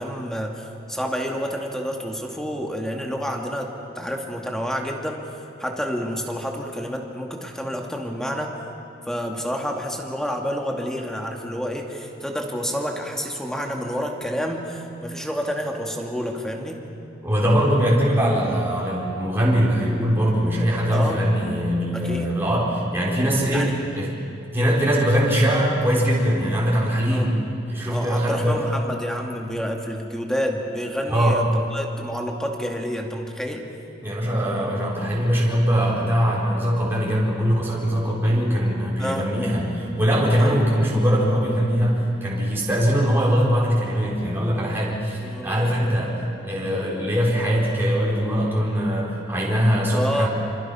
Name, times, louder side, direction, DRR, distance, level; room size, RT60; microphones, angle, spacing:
voice 1, 0.0-5.2 5.6-8.5 9.1-16.8 20.9-21.3 21.9-22.3 23.5-23.8 27.1-27.3 27.9-31.4 31.7-33.7 39.0-39.3 40.4-40.6 45.2-45.6 49.9-50.3, equal, 5° left, 1 dB, 2.4 m, -29 dB
voice 2, 17.2-24.1 24.5-27.4 27.7-28.7 31.1-31.4 34.0-50.3, equal, 10° right, -6 dB, 4.7 m, -21 dB
27.5 x 26.5 x 5.8 m, 2.8 s
head